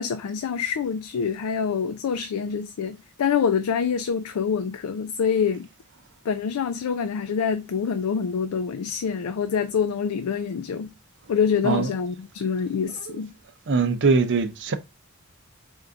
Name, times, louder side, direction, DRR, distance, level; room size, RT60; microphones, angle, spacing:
voice 1, 0.0-5.7 6.3-10.9 11.3-13.3, left 6 dB, 80° left, 0.4 m, -26 dB
voice 2, 13.7-14.8, right 4 dB, 55° right, 0.6 m, -22 dB
4.5 x 2.6 x 3.4 m
head